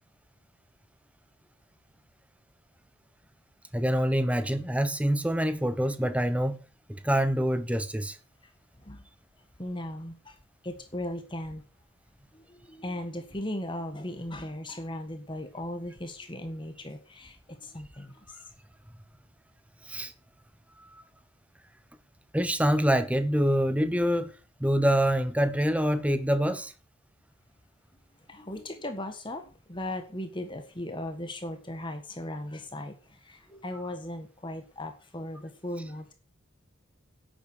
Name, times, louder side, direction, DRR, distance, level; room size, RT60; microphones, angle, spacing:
voice 1, 3.7-6.6 6.9-8.2 19.8-20.1 20.8-21.0 22.3-26.7, equal, 5° right, 1.0 m, -26 dB
voice 2, 9.6-10.4 10.6-11.6 12.3-18.5 28.3-36.1, left 1 dB, 20° left, 1.7 m, -37 dB
11.0 x 8.8 x 6.8 m
head